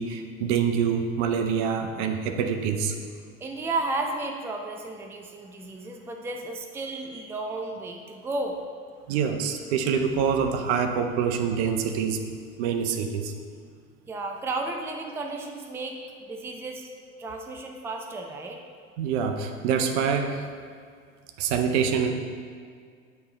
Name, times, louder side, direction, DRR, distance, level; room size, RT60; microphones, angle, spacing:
voice 1, 0.0-2.9 9.1-12.2 12.6-13.3 19.0-20.4 21.4-22.1, right 7 dB, 55° right, 6 dB, 0.7 m, -25 dB
voice 2, 3.4-8.6 14.1-16.9 17.2-18.6, right 2 dB, 5° right, 2 dB, 0.5 m, -33 dB
8.7 x 3.3 x 4.1 m, 2.1 s
figure-of-eight pair, 75°, 40 cm